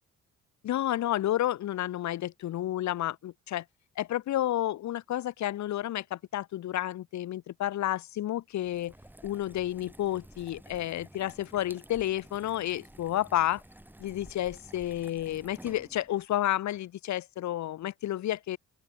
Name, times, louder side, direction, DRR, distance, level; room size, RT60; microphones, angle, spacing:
voice 1, 0.6-3.6 4.0-8.9 9.2-13.6 14.0-18.6, left 13 dB, 70° left, 1.0 m, -31 dB
sound 1, 8.6-16.2, right 1 dB, 5° right, 7.9 m, -52 dB
open air
cardioid pair, 90°, 30 cm